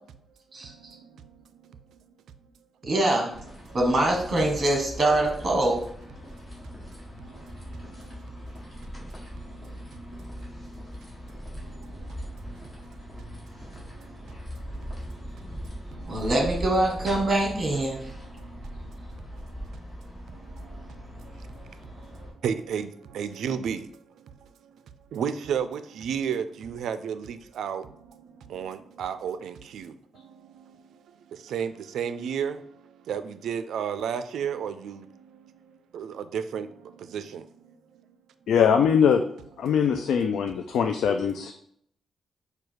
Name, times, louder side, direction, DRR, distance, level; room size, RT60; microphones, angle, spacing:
voice 1, 0.6-1.2 2.8-2.9 3.6-3.8 6.2-6.6 7.2-8.5 9.4-10.9 11.5-15.3 15.9-16.3 18.1-19.5 20.3-24.8 25.1-37.8 39.7-39.9 40.6-40.8 41.4-41.5, right 7 dB, 85° right, 0.3 m, -35 dB
voice 2, 2.9-3.3 3.7-5.8 16.1-18.0, right 1 dB, 30° right, 1.3 m, -24 dB
sound 1, 3.3-22.3, equal, 15° left, 1.7 m, -40 dB
voice 3, 38.5-39.2 39.6-41.5, left 7 dB, 85° left, 0.3 m, -22 dB
4.9 x 2.3 x 4.6 m
cardioid pair, 135°, 0 cm